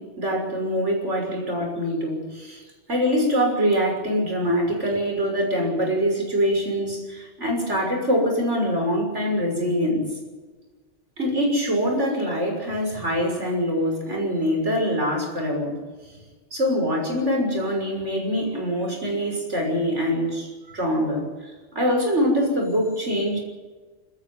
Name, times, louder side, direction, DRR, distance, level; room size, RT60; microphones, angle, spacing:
voice 1, 0.0-2.6 2.9-10.1 11.2-15.8 16.5-23.4, equal, 85° right, 1 dB, 6.7 m, -24 dB
25.5 x 14.0 x 9.4 m, 1.4 s
omnidirectional pair, 1.2 m